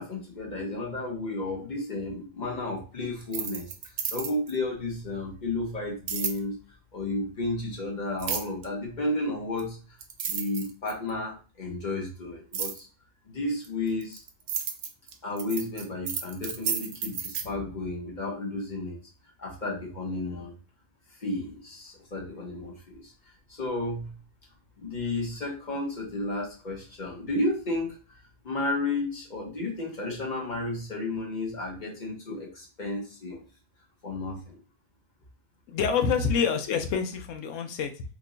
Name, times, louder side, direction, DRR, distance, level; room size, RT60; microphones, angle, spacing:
voice 1, 0.0-3.7 4.1-6.6 6.9-9.8 10.3-12.9 13.3-14.2 15.2-19.0 19.4-20.5 21.2-23.1 23.5-24.1 24.8-28.0 28.4-33.4 34.0-34.6, left 2 dB, 40° left, -2 dB, 1.0 m, -32 dB
sound 1, 3.2-4.6 6.1-6.4 8.2-8.7 9.6-9.7 10.0-11.1 12.5-12.8 13.6-17.5, right 7 dB, 75° right, 0.9 m, -32 dB
voice 2, 35.7-38.0, left 6 dB, 90° left, 6 dB, 1.0 m, -27 dB
2.9 x 2.2 x 3.7 m, 0.36 s
omnidirectional pair, 1.3 m